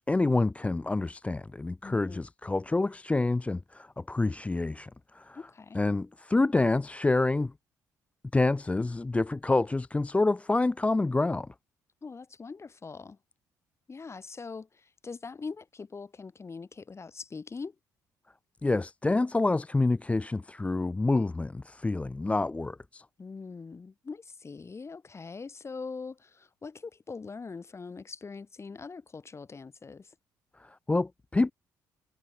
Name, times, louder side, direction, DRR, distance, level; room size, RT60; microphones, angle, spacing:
voice 1, 0.1-5.4 5.7-7.5 8.3-11.5 18.6-23.0 30.6-31.5, left 2 dB, 15° left, 0.5 m, -27 dB
voice 2, 1.8-2.3 5.3-5.8 12.0-13.2 13.9-17.8 23.2-30.2, left 4 dB, 35° left, 7.0 m, -42 dB
supercardioid pair, 65°, 8 cm